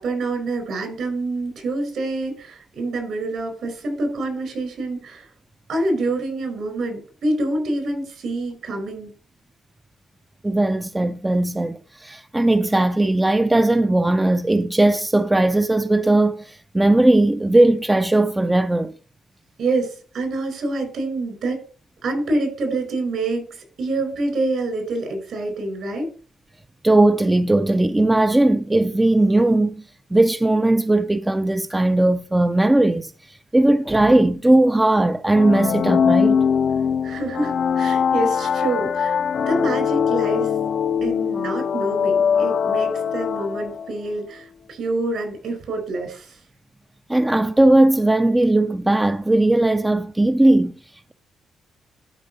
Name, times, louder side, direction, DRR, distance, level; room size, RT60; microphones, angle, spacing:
voice 1, 0.0-5.3 5.7-9.1 19.6-21.6 22.0-26.1 37.0-40.5 41.0-46.4, right 2 dB, 65° right, 4.9 m, -26 dB
voice 2, 10.4-18.9 26.8-29.8 30.1-36.4 47.1-50.7, right 2 dB, 10° right, 0.4 m, -18 dB
sound 1, 35.3-44.0, left 7 dB, 60° left, 0.4 m, -21 dB
12.0 x 4.7 x 4.1 m
cardioid pair, 90°, 0 cm